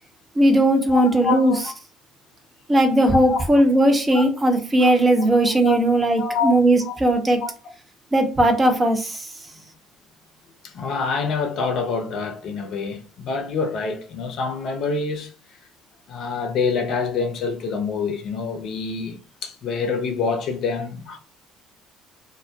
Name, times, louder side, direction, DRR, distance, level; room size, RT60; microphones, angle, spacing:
voice 1, 0.4-1.5 2.7-7.4 8.1-9.3, right 1 dB, 25° right, 0.7 m, -18 dB
voice 2, 0.9-1.7 3.1-3.4 4.1-4.2 4.8-5.8 6.2-6.5 6.8-6.9 7.4-7.5 10.6-15.3 16.1-19.2 19.4-21.2, left 4 dB, 55° left, 0.6 m, -26 dB
2.2 x 2.1 x 2.7 m
hypercardioid pair, 55°, 0 cm